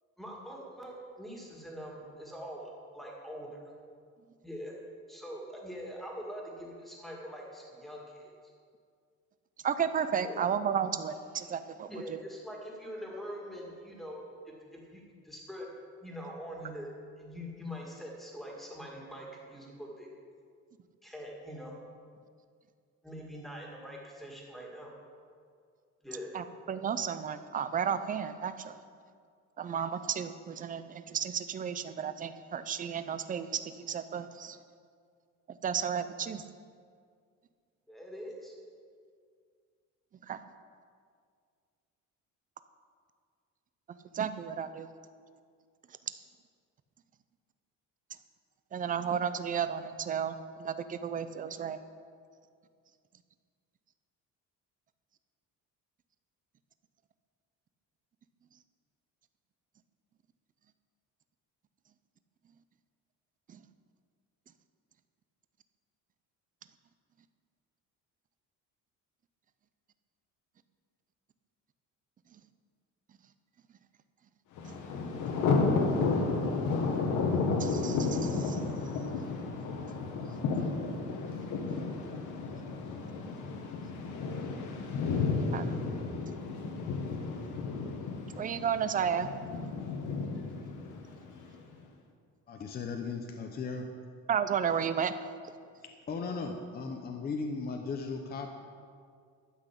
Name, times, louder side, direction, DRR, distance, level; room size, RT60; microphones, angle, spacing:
voice 1, 0.2-3.6 4.4-4.7 5.1-8.3 10.2-10.4 11.9-15.0 15.3-15.7 16.0-16.9 17.2-20.1 21.0-21.7 23.0-24.9 26.0-26.3 37.9-38.5, equal, ahead, -2 dB, 2.0 m, -43 dB
voice 2, 9.6-12.2 26.3-28.7 29.6-34.6 35.6-36.4 40.3-40.4 44.1-44.9 48.7-50.3 50.6-51.8 63.5-63.6 74.7-74.8 77.6-78.6 85.2-85.7 88.4-89.3 94.3-95.1, right 7 dB, 25° right, 11 dB, 0.5 m, -33 dB
Thunder, 74.6-91.5, left 4 dB, 70° left, 1.5 m, -32 dB
voice 3, 92.5-93.9 95.8-98.5, left 4 dB, 30° left, 3 dB, 0.7 m, -37 dB
12.5 x 6.1 x 8.4 m, 2.1 s
cardioid pair, 170°, 31 cm